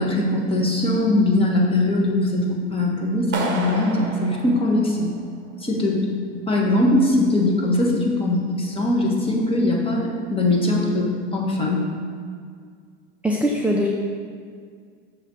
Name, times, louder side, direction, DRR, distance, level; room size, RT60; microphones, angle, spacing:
voice 1, 0.0-5.1 5.6-6.0 6.3-11.9, left 2 dB, 15° left, -2 dB, 1.3 m, -21 dB
Clapping, 3.3-5.4, right 3 dB, 30° right, 1.2 m, -30 dB
voice 2, 13.2-13.9, equal, 5° right, -1 dB, 0.4 m, -21 dB
7.0 x 3.4 x 6.2 m, 2.1 s
hypercardioid pair, 105°, 35 cm